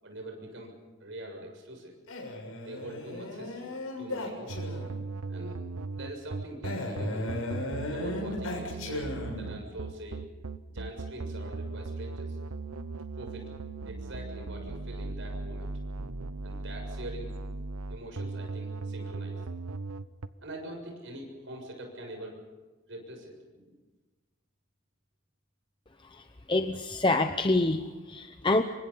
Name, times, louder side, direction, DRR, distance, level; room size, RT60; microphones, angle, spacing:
voice 1, 0.0-0.7 1.0-1.9 2.6-4.8 5.3-5.6 5.9-7.3 7.9-10.2 10.7-12.4 13.2-13.5 13.8-15.7 16.4-17.3 17.9-19.4 20.4-22.4 22.9-23.7, right 1 dB, 60° right, 2 dB, 7.1 m, -43 dB
Male speech man speaking, 2.1-5.1 6.6-9.6, left 1 dB, 85° left, 6.8 m, -36 dB
sound 1, 4.5-20.3, right 3 dB, 90° right, 0.9 m, -38 dB
voice 2, 26.1-28.6, left 2 dB, 20° left, 7 dB, 0.8 m, -27 dB
27.5 x 24.0 x 5.7 m, 1.2 s
head